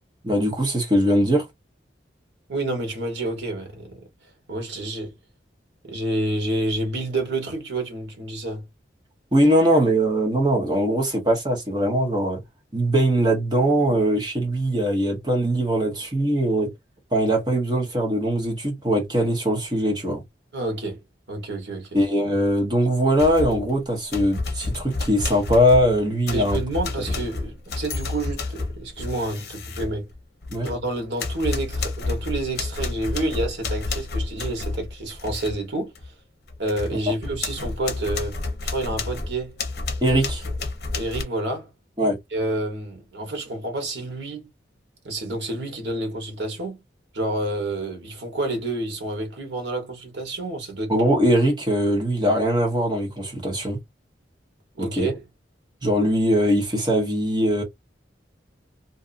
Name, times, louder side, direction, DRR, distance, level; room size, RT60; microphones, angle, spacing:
voice 1, 0.2-1.5 9.3-12.4 12.7-16.7 17.1-20.2 21.9-26.6 30.5-30.7 36.9-37.1 40.0-40.4 42.0-42.2 50.9-53.8 54.8-55.1 55.8-57.6, equal, 25° right, 1.0 m, -21 dB
voice 2, 2.5-4.0 4.5-5.1 5.8-8.7 20.5-21.0 21.3-21.9 26.3-30.1 30.6-35.9 36.6-39.6 40.9-41.7 42.3-44.5 45.0-46.8 47.1-50.9 54.8-55.1, right 2 dB, 80° right, 1.2 m, -29 dB
sound 1, 23.2-23.7 24.1-30.8 31.2-35.6 36.0-36.1 36.5-41.2, left 3 dB, 60° left, 0.8 m, -30 dB
2.6 x 2.4 x 2.5 m
head